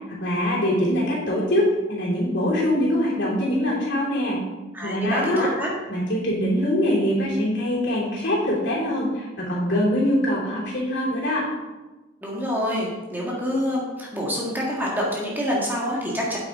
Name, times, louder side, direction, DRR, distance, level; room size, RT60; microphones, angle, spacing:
voice 1, 0.1-4.4 4.8-5.5 5.9-11.5, equal, 60° left, -4 dB, 3.1 m, -23 dB
voice 2, 4.7-5.7 12.2-16.4, equal, 10° right, -4 dB, 1.8 m, -26 dB
8.9 x 8.2 x 3.7 m, 1.2 s
head